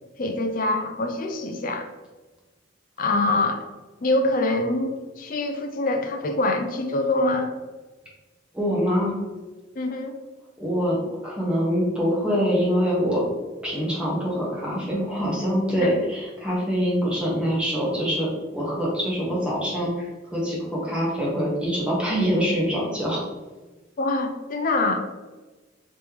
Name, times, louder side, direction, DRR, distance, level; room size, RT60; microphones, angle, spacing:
voice 1, 0.2-1.9 3.0-3.6 4.0-7.6 9.8-10.2 15.8-15.9 24.0-25.0, left 2 dB, 45° left, 5 dB, 0.5 m, -24 dB
voice 2, 8.5-9.2 10.6-11.0 11.2-13.2 13.6-23.2, equal, 5° right, -6 dB, 1.1 m, -24 dB
3.1 x 3.1 x 3.4 m, 1.2 s
head